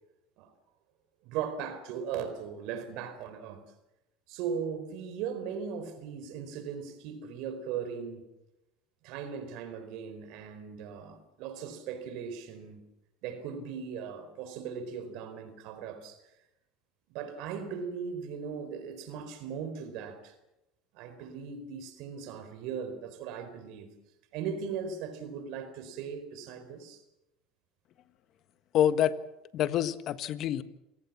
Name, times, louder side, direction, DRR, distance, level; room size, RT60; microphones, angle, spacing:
voice 1, 1.2-3.6 4.3-8.2 9.0-12.8 13.2-16.2 17.1-20.3 20.9-23.9 24.3-27.0, right 7 dB, 65° right, 10 dB, 4.3 m, -38 dB
voice 2, 28.7-29.1 29.5-30.6, left 10 dB, 55° left, 12 dB, 1.5 m, -26 dB
28.0 x 18.0 x 7.3 m, 0.92 s
supercardioid pair, 95°, 0 cm